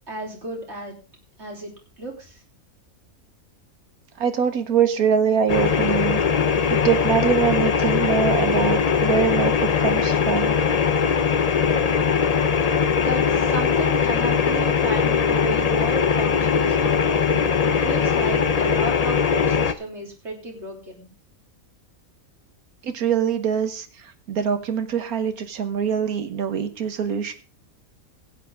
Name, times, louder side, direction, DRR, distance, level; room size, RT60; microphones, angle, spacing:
voice 1, 0.1-1.0 1.4-1.7 2.0-2.4 13.0-21.1, right 2 dB, 50° right, 0 dB, 3.5 m, -33 dB
voice 2, 4.2-6.2 6.7-9.5 9.8-10.6 22.8-23.9 24.3-27.3, right 7 dB, 80° right, 9 dB, 1.6 m, -23 dB
sound 1, 5.5-19.7, left 6 dB, 50° left, 0.4 m, -20 dB
15.5 x 9.8 x 3.5 m, 0.33 s
omnidirectional pair, 1.5 m